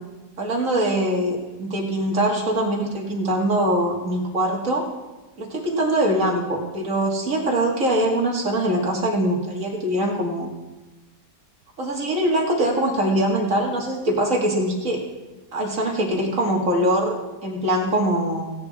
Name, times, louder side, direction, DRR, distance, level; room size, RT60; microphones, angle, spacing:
voice 1, 0.4-4.8 5.4-10.5 11.8-15.0 15.5-17.2 17.4-18.5, right 1 dB, 45° right, -1 dB, 2.2 m, -22 dB
16.0 x 9.4 x 3.5 m, 1.2 s
omnidirectional pair, 1.9 m